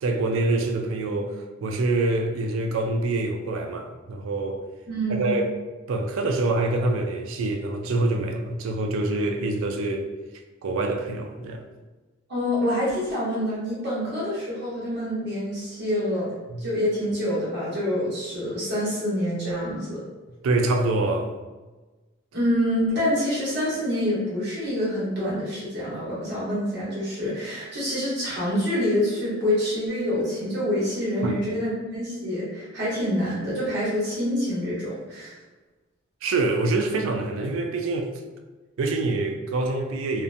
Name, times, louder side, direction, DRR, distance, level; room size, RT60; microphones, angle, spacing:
voice 1, 0.0-4.6 5.1-5.5 5.9-10.1 10.6-11.7 16.5-16.6 20.4-21.3 31.2-31.4 36.2-38.1 38.8-40.2, right 2 dB, 80° right, 0.3 m, -25 dB
voice 2, 4.9-5.4 12.3-16.3 16.6-20.0 22.3-35.4, equal, 55° right, 1.0 m, -26 dB
2.7 x 2.1 x 2.5 m
head